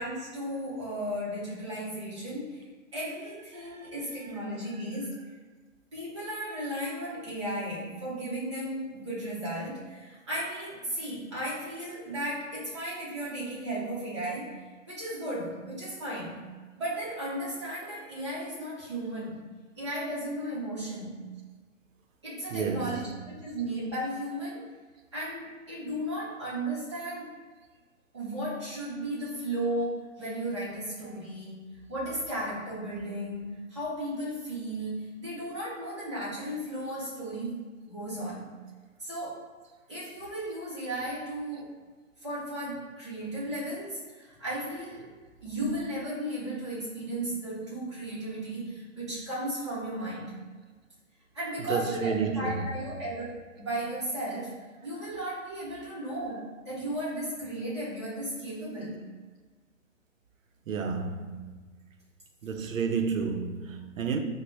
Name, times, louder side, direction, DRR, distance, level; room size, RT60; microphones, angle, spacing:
voice 1, 0.0-2.7 2.9-5.2 5.9-14.6 14.9-16.5 16.8-19.4 19.8-21.3 22.2-24.7 25.1-27.4 28.1-38.5 39.0-39.5 39.9-41.8 42.2-45.1 45.4-50.5 51.3-59.0, right 1 dB, 20° right, 0.7 m, -35 dB
voice 2, 3.5-4.1 22.5-23.2 51.7-52.6 60.7-61.7 62.4-64.2, right 5 dB, 75° right, 0.6 m, -31 dB
3.9 x 2.1 x 3.1 m
hypercardioid pair, 175°, 39 cm